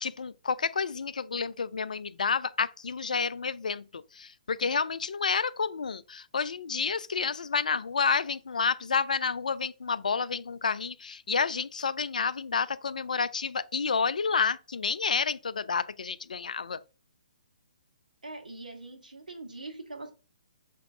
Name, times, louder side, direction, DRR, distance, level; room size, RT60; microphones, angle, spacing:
voice 1, 0.0-16.8, left 5 dB, 70° left, 0.3 m, -30 dB
voice 2, 18.2-20.1, right 2 dB, 75° right, 1.1 m, -42 dB
6.0 x 2.6 x 2.4 m
figure-of-eight pair, 130°, 4 cm